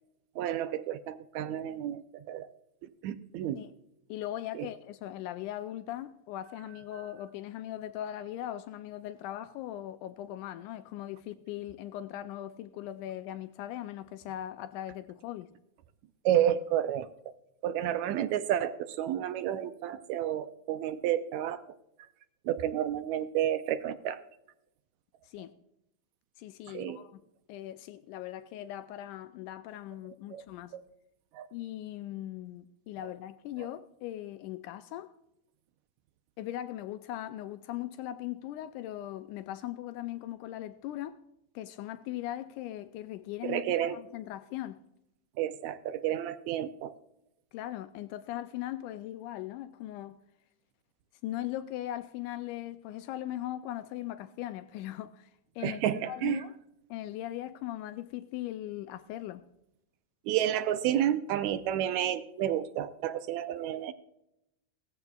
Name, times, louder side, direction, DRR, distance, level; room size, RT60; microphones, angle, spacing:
voice 1, 0.4-2.5 2.8-3.6 4.5-4.7 16.3-17.3 17.6-21.6 22.5-24.2 26.7-27.0 30.3-30.4 30.7-30.8 31.3-31.5 43.4-44.0 45.4-46.9 55.6-56.4 60.3-63.9, right 11 dB, 80° right, 1.8 m, -31 dB
voice 2, 4.1-15.5 25.2-25.5 26.4-27.2 27.5-30.7 31.5-35.1 36.4-41.2 41.6-44.8 47.5-50.2 51.2-55.3 55.6-56.6 56.9-59.5, left 13 dB, 85° left, 2.0 m, -39 dB
17.5 x 14.5 x 2.3 m
omnidirectional pair, 3.6 m